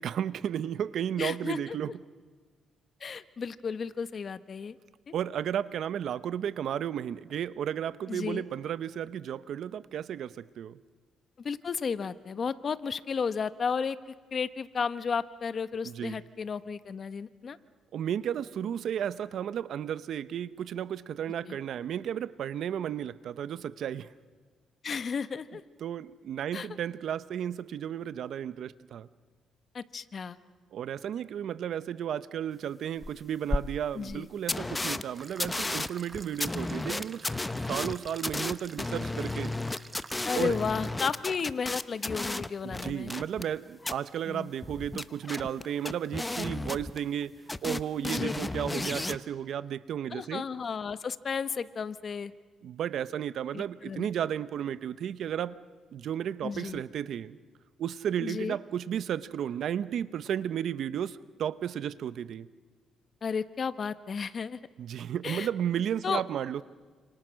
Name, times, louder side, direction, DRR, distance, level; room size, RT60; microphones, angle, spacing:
voice 1, 0.0-1.9 5.1-10.8 15.8-16.2 17.9-24.1 25.8-29.1 30.7-37.3 37.7-39.6 40.3-40.6 42.6-47.3 47.6-50.4 52.6-55.6 55.9-57.4 57.8-62.5 64.8-66.6, right 9 dB, 70° right, 15 dB, 0.9 m, -33 dB
voice 2, 1.2-1.8 3.0-4.8 5.1-5.2 8.1-8.4 11.4-14.0 14.3-17.6 21.4-21.6 24.8-25.6 26.5-26.7 29.7-30.4 33.9-34.3 40.3-43.1 44.3-44.5 48.0-48.3 48.7-48.8 50.1-52.3 53.5-54.1 56.4-56.8 58.2-58.6 63.2-64.6 65.2-65.5 66.0-66.2, left 6 dB, 45° left, 13 dB, 1.1 m, -33 dB
sound 1, 33.0-33.1 33.5-33.6 34.1-34.2 34.5-35.0 35.4-43.5 43.8-43.9 44.6-47.2 47.5-49.2, left 2 dB, 15° left, 0.9 m, -33 dB
sound 2, 35.1-40.9, right 3 dB, 25° right, 1.1 m, -49 dB
30.0 x 27.5 x 6.4 m, 1.5 s
cardioid pair, 90°, 0 cm